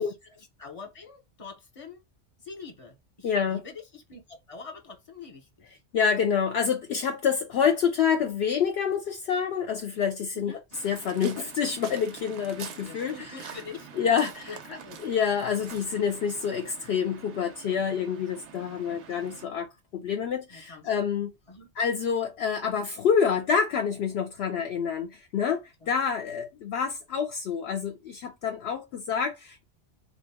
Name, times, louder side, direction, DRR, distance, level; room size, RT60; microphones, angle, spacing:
voice 1, 0.0-2.0 2.4-5.8 10.3-10.6 12.8-15.0 18.9-19.0 20.5-20.9 21.5-21.7 25.8-25.9, left 4 dB, 30° left, 0.9 m, -45 dB
voice 2, 3.2-3.6 5.9-13.1 14.0-14.5 15.0-21.3 21.8-29.6, left 7 dB, 65° left, 0.8 m, -27 dB
Waves surf, 10.7-19.5, right 7 dB, 75° right, 0.9 m, -46 dB
2.9 x 2.4 x 3.4 m
omnidirectional pair, 1.2 m